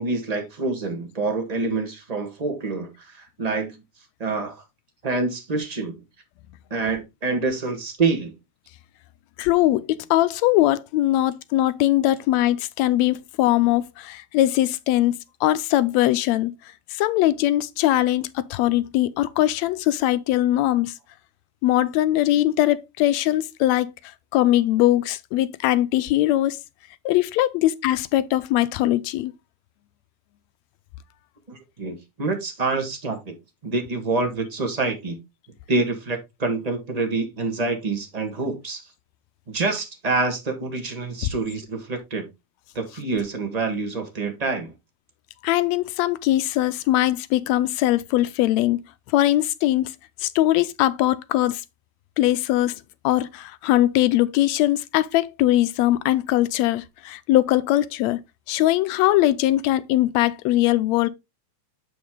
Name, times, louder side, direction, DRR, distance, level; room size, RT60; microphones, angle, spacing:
voice 1, 0.0-3.8 4.2-4.6 5.0-5.9 6.7-8.3 31.5-33.3 33.6-35.2 35.7-38.9 39.5-42.3 42.7-44.7, right 3 dB, 25° right, 0.8 m, -26 dB
voice 2, 9.4-16.5 16.9-20.9 21.6-26.6 27.0-29.3 45.4-48.8 49.1-51.6 52.2-52.7 53.0-58.2 58.5-61.1, left 14 dB, 80° left, 1.7 m, -21 dB
7.9 x 5.2 x 3.6 m
omnidirectional pair, 3.4 m